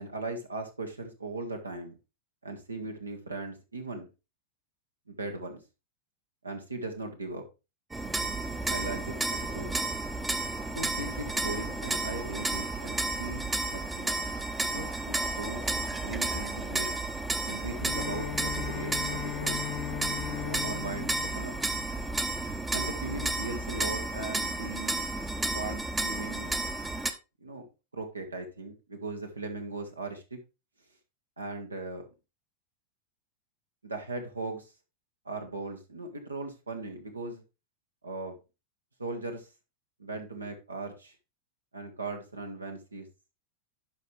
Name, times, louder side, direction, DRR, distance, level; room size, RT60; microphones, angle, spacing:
voice 1, 0.0-1.9 2.4-4.1 5.1-5.6 6.4-7.4 8.7-9.7 10.7-14.3 14.7-17.0 17.4-19.6 20.4-21.5 22.7-25.0 25.4-26.5 27.4-27.7 27.9-30.4 31.4-32.1 33.8-34.7 35.2-37.4 38.0-38.4 39.0-39.5 40.0-41.1 41.7-43.1, right 2 dB, 80° right, 4 dB, 1.6 m, -38 dB
sound 1, 7.9-27.1, right 2 dB, 10° right, 0.8 m, -32 dB
Bowed string instrument, 17.7-22.6, left 20 dB, 40° left, 0.3 m, -39 dB
11.5 x 5.0 x 3.3 m, 0.28 s
figure-of-eight pair, 90°, 0 cm